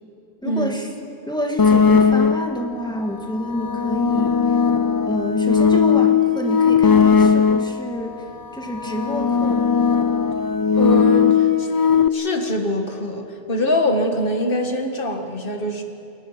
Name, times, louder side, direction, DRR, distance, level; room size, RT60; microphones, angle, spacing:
voice 1, 0.4-0.9 1.3-4.6 5.1-8.2 8.5-9.7, equal, 5° left, 2 dB, 2.0 m, -28 dB
sound 1, 1.6-2.7 3.4-7.9 8.7-12.1, left 6 dB, 35° left, 0.3 m, -17 dB
voice 2, 10.7-11.7 12.1-15.8, left 1 dB, 60° left, 4 dB, 2.0 m, -23 dB
30.0 x 21.0 x 5.9 m, 3.0 s
omnidirectional pair, 1.1 m